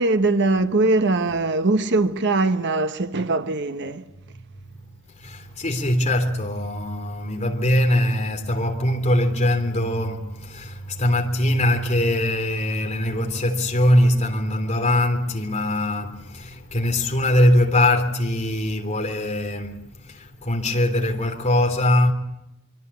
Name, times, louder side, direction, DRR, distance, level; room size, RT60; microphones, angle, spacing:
voice 1, 0.0-4.1, right 2 dB, 55° right, 1.2 m, -21 dB
voice 2, 5.2-22.1, left 1 dB, 35° left, 3.4 m, -22 dB
25.0 x 25.0 x 8.4 m
head